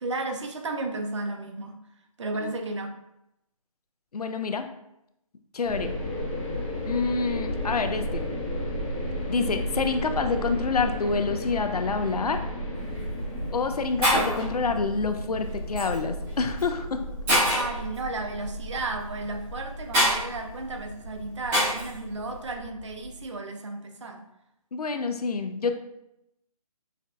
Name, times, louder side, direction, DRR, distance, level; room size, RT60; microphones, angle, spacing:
voice 1, 0.0-1.8 2.2-2.9 17.5-24.2, right 2 dB, 50° right, 5 dB, 0.6 m, -33 dB
voice 2, 4.1-4.7 5.5-6.0 6.8-8.3 9.3-12.4 13.5-17.0 24.7-25.8, left 4 dB, 80° left, 7 dB, 0.5 m, -27 dB
sound 1, 5.6-23.3, equal, 15° left, 0.6 m, -34 dB
Shatter, 12.8-13.0 13.7-13.8 14.0-14.5 15.8-16.0 16.6-16.7 17.3-17.8 19.9-20.2 21.5-21.9, equal, 10° right, 0.8 m, -23 dB
5.6 x 2.1 x 2.4 m, 0.83 s
figure-of-eight pair, 155°, 19 cm